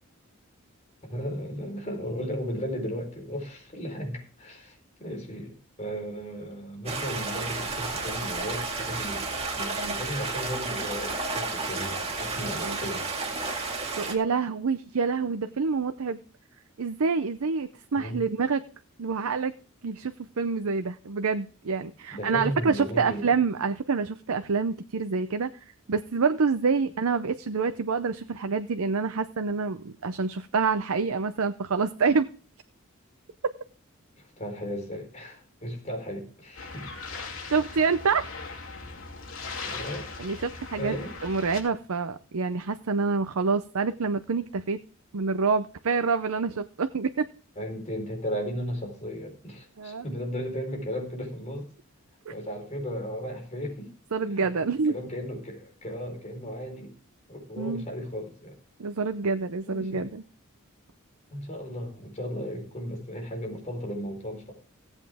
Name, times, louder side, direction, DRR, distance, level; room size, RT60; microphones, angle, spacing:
voice 1, 1.0-13.1 18.0-18.2 22.1-23.3 34.2-36.9 39.6-40.1 40.8-41.1 47.6-51.7 52.3-53.9 54.2-56.9 57.3-58.6 59.7-60.1 61.3-64.5, equal, 35° left, 3 dB, 4.3 m, -35 dB
Stream, 6.9-14.1, right 3 dB, 30° right, 2.2 m, -32 dB
voice 2, 14.0-16.2 16.8-18.6 19.0-19.5 19.8-32.3 37.5-38.2 40.2-40.9 41.2-44.8 45.1-47.3 49.8-50.0 52.3-52.4 54.1-54.9 57.6-57.8 58.8-60.2, right 4 dB, 90° right, 9 dB, 0.6 m, -27 dB
sound 1, 36.5-41.6, left 4 dB, 75° left, 3.0 m, -39 dB
17.0 x 8.2 x 3.5 m, 0.40 s
head